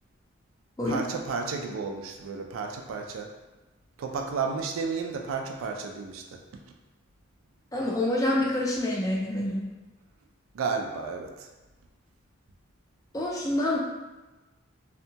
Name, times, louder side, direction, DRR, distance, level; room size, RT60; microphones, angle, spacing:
voice 1, 0.8-3.3 4.0-6.4 10.5-11.5, right 5 dB, 80° right, 3 dB, 0.3 m, -32 dB
voice 2, 7.7-9.7 13.1-13.8, left 1 dB, 15° left, -3 dB, 0.3 m, -27 dB
2.7 x 2.2 x 2.7 m, 1.1 s
head